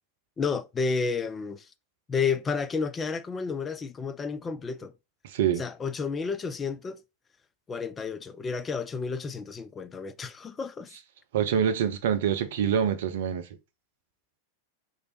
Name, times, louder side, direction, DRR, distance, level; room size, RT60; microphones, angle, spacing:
voice 1, 0.4-1.6 2.1-4.9 5.6-7.0 7.7-10.9, left 5 dB, 20° left, 0.4 m, -31 dB
voice 2, 5.2-5.6 11.3-13.5, right 8 dB, 55° right, 0.6 m, -25 dB
3.3 x 2.6 x 3.9 m
figure-of-eight pair, 90°, 0 cm